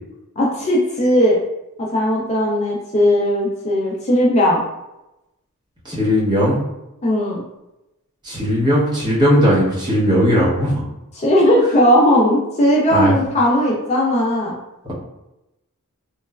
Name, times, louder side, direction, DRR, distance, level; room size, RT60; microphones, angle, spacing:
voice 1, 0.4-1.4 1.8-4.6 7.0-7.4 11.1-14.5, equal, 30° left, -3 dB, 0.4 m, -17 dB
voice 2, 5.8-6.6 8.2-10.8 12.9-13.2 14.8-14.9, equal, 20° right, -7 dB, 0.8 m, -17 dB
3.0 x 2.0 x 2.3 m, 0.92 s
head